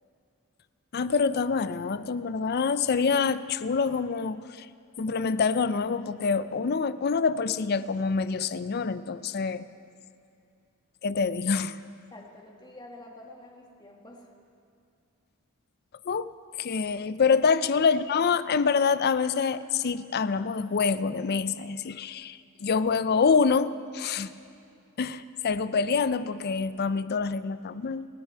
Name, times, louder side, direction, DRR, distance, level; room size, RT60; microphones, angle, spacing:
voice 1, 0.9-4.7 5.0-9.6 11.0-11.8 16.1-16.3 16.6-24.3 25.0-28.1, left 5 dB, 45° left, 14 dB, 0.4 m, -26 dB
voice 2, 12.1-14.3 17.3-17.4, left 1 dB, 20° left, 1 dB, 1.6 m, -46 dB
27.5 x 10.0 x 4.5 m, 2.5 s
head